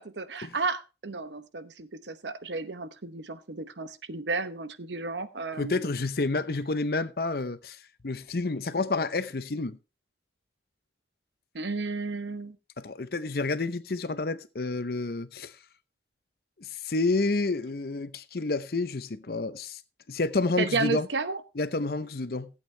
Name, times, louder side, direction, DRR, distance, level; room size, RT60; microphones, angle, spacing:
voice 1, 0.0-5.9 11.5-12.6 20.6-21.4, right 3 dB, 85° right, 1.0 m, -33 dB
voice 2, 5.6-7.8 8.0-9.8 12.8-15.5 16.6-19.8 20.1-21.1 21.6-22.5, left 3 dB, 60° left, 0.7 m, -29 dB
15.5 x 8.3 x 3.3 m
head